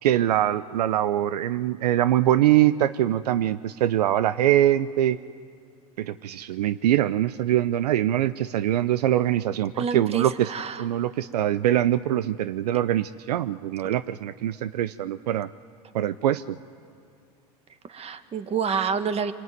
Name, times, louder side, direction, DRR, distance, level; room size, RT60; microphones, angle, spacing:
voice 1, 0.0-5.2 6.0-10.5 10.8-15.5 15.9-16.6, right 12 dB, 80° right, 14 dB, 0.6 m, -23 dB
voice 2, 9.8-10.8 17.9-19.3, right 6 dB, 30° right, 9 dB, 1.7 m, -28 dB
25.0 x 21.5 x 9.5 m, 2.3 s
hypercardioid pair, 90°, 20 cm